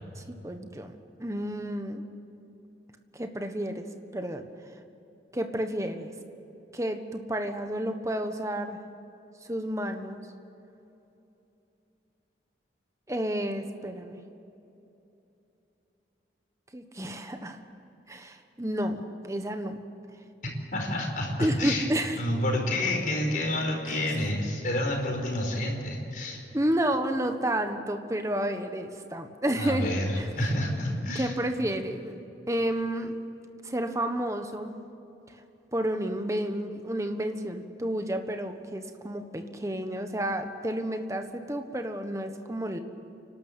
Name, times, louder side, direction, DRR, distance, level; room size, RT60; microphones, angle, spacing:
voice 1, 0.2-0.9 1.2-2.0 3.1-3.9 4.1-4.5 5.3-6.1 6.7-8.8 9.5-10.2 13.1-14.2 16.7-17.6 18.1-19.8 21.4-22.2 23.9-24.0 26.5-29.9 30.2-30.3 31.1-32.2 32.5-33.1 33.6-34.8 35.7-42.8, right 1 dB, 15° right, 7 dB, 1.3 m, -31 dB
voice 2, 20.7-21.9 22.1-26.4 29.6-31.3, left 1 dB, 50° left, 1 dB, 5.1 m, -29 dB
29.0 x 12.5 x 9.2 m, 2.9 s
head